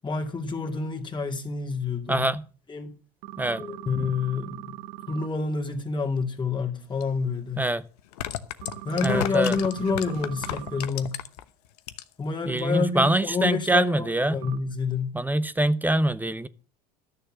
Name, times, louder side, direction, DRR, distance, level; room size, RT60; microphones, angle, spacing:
voice 1, 0.0-2.3 2.7-2.9 3.6-4.8 5.1-7.6 8.8-11.2 12.2-15.2, left 4 dB, 25° left, 2.3 m, -28 dB
voice 2, 2.1-2.4 3.4-3.6 7.6-7.8 9.0-9.6 12.5-14.4 15.1-16.5, right 1 dB, 10° right, 0.8 m, -24 dB
sound 1, 3.2-5.3 8.6-10.9 14.4-14.6, right 15 dB, 65° right, 1.1 m, -41 dB
sound 2, 7.0-7.1 8.0-11.4 11.8-12.3 12.6-12.7, left 13 dB, 75° left, 1.0 m, -33 dB
13.0 x 6.8 x 7.2 m
hypercardioid pair, 75°, 20 cm